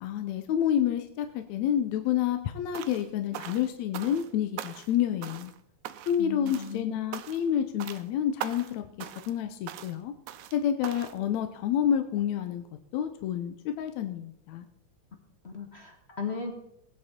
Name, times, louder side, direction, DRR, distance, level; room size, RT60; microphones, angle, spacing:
voice 1, 0.0-5.5 6.1-10.1 10.5-12.6 12.9-14.7, left 9 dB, 75° left, 7 dB, 2.0 m, -29 dB
sound 1, 2.7-3.1 3.3-4.3 4.6-5.0 5.2-5.6 5.9-6.2 6.5-6.8 7.1-7.5 7.8-8.1 8.4-8.7 9.0-9.4 9.7-10.0 10.3-10.6 10.8-11.2, right 11 dB, 85° right, 2.2 m, -40 dB
voice 2, 6.2-7.0 15.4-16.5, left 5 dB, 45° left, 3 dB, 0.8 m, -36 dB
19.0 x 9.5 x 4.4 m, 0.78 s
omnidirectional pair, 3.4 m